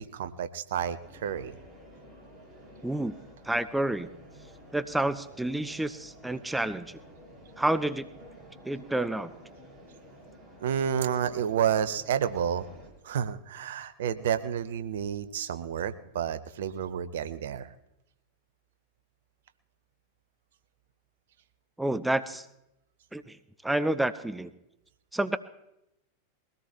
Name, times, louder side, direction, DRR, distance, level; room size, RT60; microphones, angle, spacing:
voice 1, 0.0-1.5 10.6-12.7 13.0-17.7, right 8 dB, 60° right, 12 dB, 0.7 m, -30 dB
sound 1, 1.0-12.9, equal, 25° right, 5.0 m, -51 dB
voice 2, 2.8-3.2 3.4-4.1 4.7-7.0 7.6-8.1 8.6-9.3 21.8-22.5 23.1-23.4 23.6-24.5 25.1-25.4, right 1 dB, 5° right, 11 dB, 0.6 m, -29 dB
21.5 x 17.0 x 2.9 m, 0.86 s
figure-of-eight pair, 90°, 0 cm